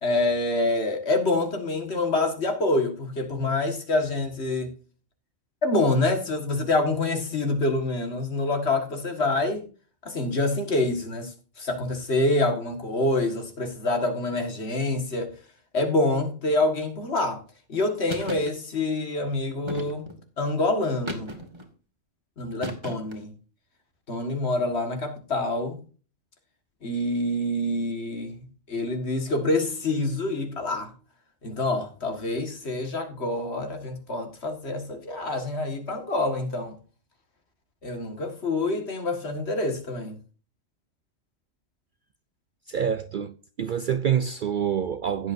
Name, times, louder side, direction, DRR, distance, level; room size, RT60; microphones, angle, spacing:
voice 1, 0.0-4.7 5.6-9.6 10.1-15.3 15.7-17.4 17.7-20.1 20.4-21.3 22.4-23.3 24.1-25.8 26.8-30.9 31.4-36.7 37.8-40.2, left 2 dB, 60° left, 2.0 m, -26 dB
sound 1, 18.1-18.5 19.7-20.2 21.1-21.7 22.6-23.3, equal, 20° right, 1.7 m, -35 dB
voice 2, 42.7-45.3, right 8 dB, 55° right, 0.6 m, -27 dB
16.0 x 8.1 x 2.6 m
omnidirectional pair, 1.3 m